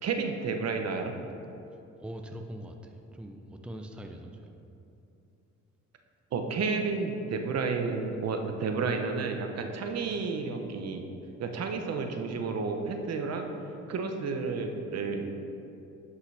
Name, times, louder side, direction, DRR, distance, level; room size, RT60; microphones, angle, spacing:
voice 1, 0.0-1.2 6.3-11.1 11.4-13.5 13.9-15.2, right 4 dB, 55° right, 4 dB, 0.9 m, -31 dB
voice 2, 2.0-4.5, equal, 5° right, 4 dB, 0.5 m, -42 dB
11.0 x 5.7 x 3.4 m, 2.7 s
cardioid pair, 90°, 30 cm